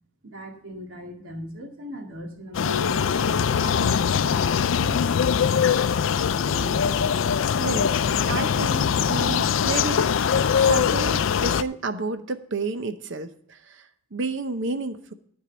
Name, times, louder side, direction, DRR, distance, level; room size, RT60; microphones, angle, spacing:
voice 1, 0.2-4.4 6.1-6.7, equal, 85° right, 1 dB, 2.2 m, -38 dB
sound 1, 2.5-11.6, left 7 dB, 70° left, 0.4 m, -22 dB
voice 2, 7.6-7.9 8.3-10.1 10.6-13.3 14.1-15.1, right 3 dB, 65° right, 9 dB, 0.8 m, -30 dB
13.0 x 4.7 x 7.9 m, 0.65 s
head